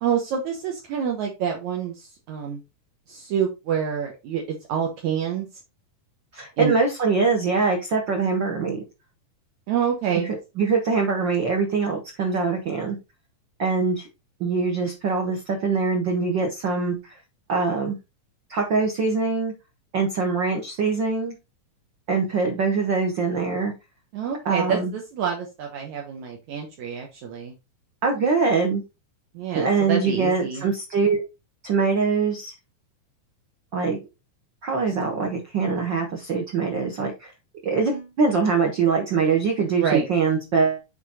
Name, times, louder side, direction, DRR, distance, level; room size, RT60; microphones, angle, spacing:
voice 1, 0.0-2.6 3.1-4.4 4.7-5.5 6.6-6.8 9.7-10.3 24.1-27.5 29.3-30.7 39.8-40.1, right 7 dB, 65° right, 1 dB, 2.3 m, -27 dB
voice 2, 6.3-8.8 10.1-10.2 10.6-13.0 13.6-14.1 14.4-17.1 17.5-18.0 18.5-19.5 19.9-21.3 22.1-23.7 24.4-24.9 28.0-28.8 29.5-31.2 31.6-32.5 33.7-34.0 34.6-37.3 37.6-40.8, right 4 dB, 50° right, 1 dB, 1.4 m, -23 dB
7.3 x 4.5 x 4.2 m, 0.25 s
omnidirectional pair, 3.8 m